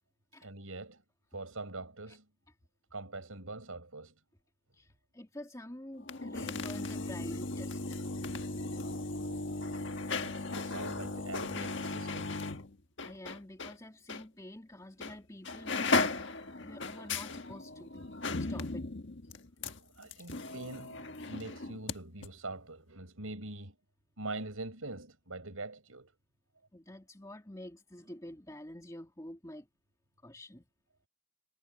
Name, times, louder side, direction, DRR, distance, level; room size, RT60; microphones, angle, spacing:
voice 1, 0.4-1.0 1.3-2.2 2.9-4.1 9.2-12.4 20.0-23.7 24.2-26.1, right 2 dB, 85° right, 6.0 m, -44 dB
voice 2, 4.7-7.8 13.0-16.2 16.6-18.0 18.3-18.9 26.7-29.7 30.2-30.7, left 1 dB, 15° left, 2.9 m, -48 dB
sound 1, 6.0-13.8 14.1-14.2 15.0-15.2 15.4-22.0 22.2-22.3, left 3 dB, 60° left, 1.6 m, -36 dB
head